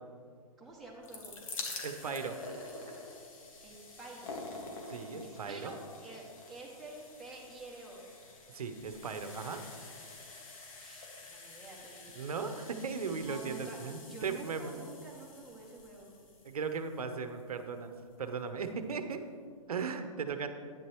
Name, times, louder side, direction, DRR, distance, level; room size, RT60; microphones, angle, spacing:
voice 1, 0.6-1.4 3.6-4.4 5.2-8.0 10.7-12.2 13.2-13.8 14.1-16.1, right 2 dB, ahead, -4 dB, 1.9 m, -49 dB
sound 1, 0.8-17.8 18.6-18.7 18.9-19.0, left 3 dB, 60° left, 1.7 m, -48 dB
voice 2, 1.8-2.4 4.9-5.7 8.5-9.6 12.2-14.9 16.4-17.9 18.2-19.2 19.7-20.5, right 5 dB, 75° right, 8 dB, 0.9 m, -37 dB
11.5 x 9.3 x 3.1 m, 2.1 s
hypercardioid pair, 135°, 19 cm